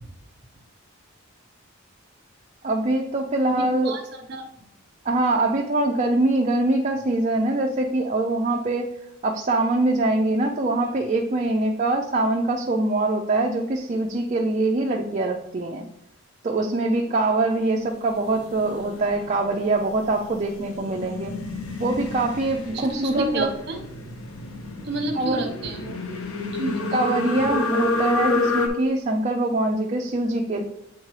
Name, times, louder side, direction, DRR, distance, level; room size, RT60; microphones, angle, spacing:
voice 1, 2.6-3.9 5.0-8.9 9.2-15.8 16.4-21.3 21.8-23.5 25.1-25.4 26.9-30.6, right 2 dB, 35° right, 1 dB, 0.4 m, -23 dB
voice 2, 3.6-4.4 22.7-23.8 24.8-26.0 26.5-27.1, right 2 dB, 50° right, 3 dB, 1.0 m, -30 dB
sound 1, 18.2-28.7, left 3 dB, 85° left, 0.8 m, -29 dB
8.6 x 3.7 x 3.2 m, 0.80 s
head